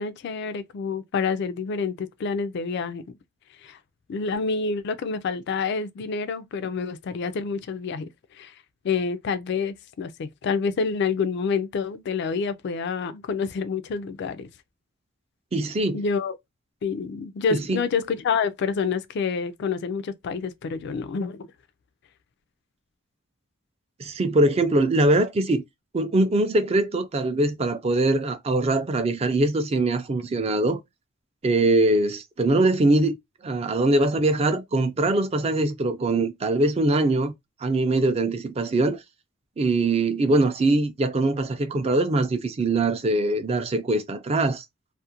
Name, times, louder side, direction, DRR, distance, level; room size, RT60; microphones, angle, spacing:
voice 1, 0.0-3.0 3.6-3.8 4.1-8.5 8.8-14.5 15.9-16.4 16.8-21.5, left 5 dB, 55° left, 0.3 m, -28 dB
voice 2, 15.5-16.0 17.5-17.8 24.0-25.6 25.9-30.8 31.4-33.2 33.4-37.3 37.6-39.0 39.6-44.6, right 2 dB, 30° right, 0.4 m, -22 dB
2.4 x 2.1 x 2.7 m
head